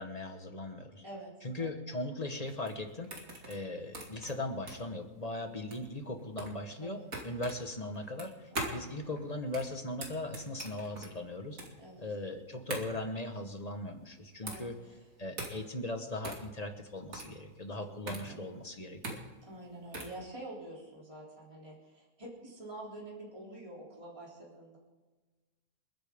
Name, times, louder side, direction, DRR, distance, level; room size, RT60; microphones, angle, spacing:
voice 1, 0.0-1.0 1.4-3.1 3.5-7.0 7.2-11.6 12.0-14.7 15.2-19.2, left 2 dB, 25° left, 5 dB, 1.4 m, -39 dB
sound 1, 2.4-20.2, right 2 dB, 65° right, 2.8 m, -43 dB
voice 2, 8.5-8.9 11.8-12.0 14.4-15.0 18.0-18.4 19.4-24.8, right 1 dB, 20° right, -5 dB, 3.4 m, -47 dB
28.5 x 10.0 x 3.7 m, 1.3 s
omnidirectional pair, 1.6 m